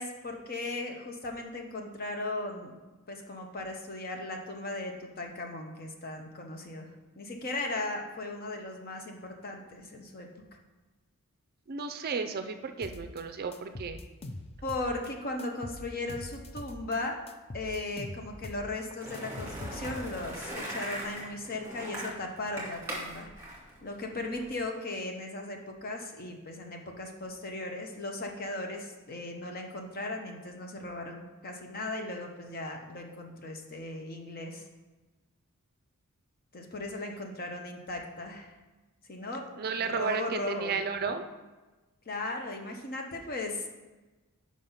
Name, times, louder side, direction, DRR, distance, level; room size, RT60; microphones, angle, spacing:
voice 1, 0.0-2.8 3.1-6.9 7.2-10.3 14.6-17.2 17.5-23.3 23.8-34.6 36.5-38.5 39.1-39.5 39.8-40.8 42.1-43.7, left 2 dB, 40° left, 2 dB, 0.9 m, -37 dB
voice 2, 11.7-14.0 39.6-41.2, right 5 dB, 45° right, 8 dB, 0.4 m, -33 dB
sound 1, 12.8-13.2 13.5-15.1 15.4-17.0 17.3-20.4, left 1 dB, 25° left, 0.5 m, -43 dB
Skateboard, 19.0-24.5, right 1 dB, 10° right, 1.9 m, -40 dB
5.3 x 5.0 x 5.6 m, 1.2 s
head